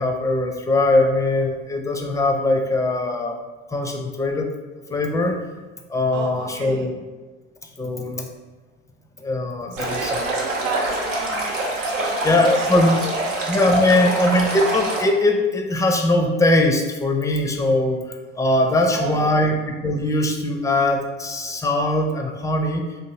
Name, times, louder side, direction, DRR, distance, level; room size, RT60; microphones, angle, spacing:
voice 1, 0.0-3.4 3.7-4.5 4.9-5.4 5.9-6.9 7.8-8.3 9.2-10.2 12.2-12.9 13.5-18.0 18.4-19.5 19.8-22.8, left 2 dB, 10° left, 2 dB, 0.4 m, -21 dB
voice 2, 6.1-7.0 9.7-11.5 11.8-13.3 13.9-14.3 18.9-19.5, right 4 dB, 55° right, 3 dB, 0.7 m, -34 dB
Stream, 9.8-15.0, right 1 dB, 90° right, 0.6 m, -25 dB
3.6 x 2.5 x 3.0 m, 1.3 s
figure-of-eight pair, 60°, 37 cm